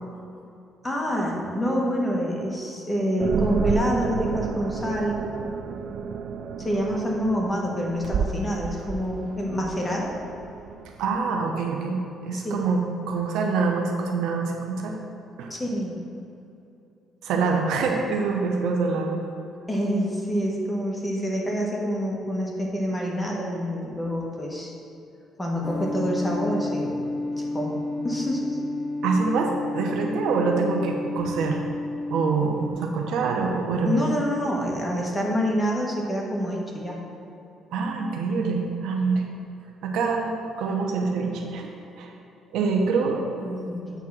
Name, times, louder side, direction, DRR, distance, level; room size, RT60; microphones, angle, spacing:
voice 1, 0.8-5.2 6.6-10.1 12.3-12.7 15.5-16.0 19.7-24.7 25.4-27.0 27.4-28.6 33.8-37.0 43.4-44.0, equal, 10° left, -2 dB, 1.3 m, -27 dB
sound 1, 3.2-11.2, right 6 dB, 60° right, 0.4 m, -31 dB
voice 2, 11.0-12.0 12.2-15.0 15.4-15.5 17.2-19.2 29.0-31.6 32.1-34.0 37.7-39.2 39.8-41.7 42.0-42.1 42.5-43.3, right 4 dB, 85° right, 2 dB, 0.9 m, -25 dB
sound 2, 25.6-32.7, left 2 dB, 30° left, 0.5 m, -31 dB
8.2 x 3.6 x 6.0 m, 2.7 s
cardioid pair, 115°, 0 cm